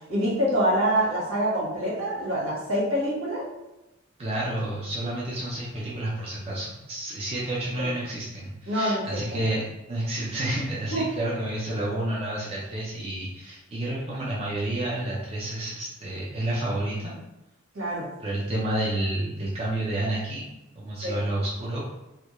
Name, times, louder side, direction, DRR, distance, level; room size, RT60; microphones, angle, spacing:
voice 1, 0.1-3.5 7.8-7.9 8.7-9.4 10.9-11.1 17.7-18.1 21.0-21.2, right 1 dB, 75° right, -6 dB, 1.0 m, -26 dB
voice 2, 4.2-17.1 18.2-21.8, right 1 dB, 30° right, -6 dB, 0.4 m, -30 dB
2.2 x 2.1 x 2.9 m, 0.97 s
head